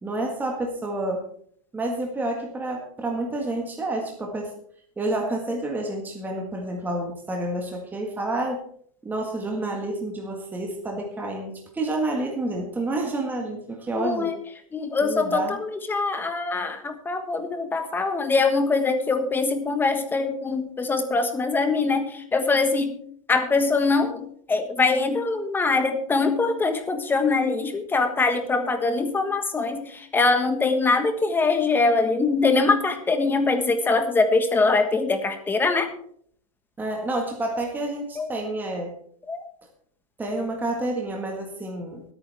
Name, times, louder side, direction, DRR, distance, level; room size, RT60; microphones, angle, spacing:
voice 1, 0.0-1.2 1.7-4.5 5.0-8.6 9.0-14.3 15.0-15.6 36.8-39.0 40.2-42.0, right 2 dB, 10° right, 1 dB, 1.7 m, -29 dB
voice 2, 14.0-14.3 14.7-22.9 23.3-24.2 24.5-29.8 30.1-35.9 38.2-38.3 39.3-39.4, left 3 dB, 10° left, 7 dB, 1.4 m, -23 dB
21.5 x 9.0 x 3.5 m, 0.62 s
supercardioid pair, 145°, 18 cm